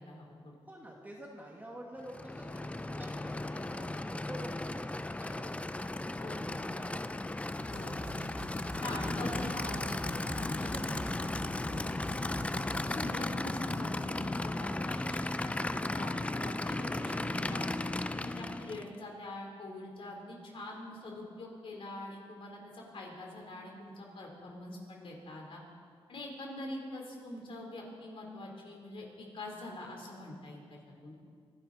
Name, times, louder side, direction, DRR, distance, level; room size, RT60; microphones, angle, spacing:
voice 1, 0.0-0.5 3.5-3.9 6.2-6.5 7.7-8.0 8.8-11.0 11.6-11.9 12.5-17.7 18.2-25.6 26.1-31.1, left 1 dB, 60° left, 0 dB, 3.8 m, -44 dB
voice 2, 0.6-8.6 10.6-11.1, right 1 dB, 15° right, -2 dB, 1.9 m, -50 dB
Aircraft / Idling, 2.0-18.9, left 2 dB, 10° left, 0.4 m, -36 dB
sound 1, 2.2-14.3, left 1 dB, 30° left, 4.2 m, -48 dB
25.0 x 11.5 x 4.2 m, 2.2 s
cardioid pair, 100°, 10 cm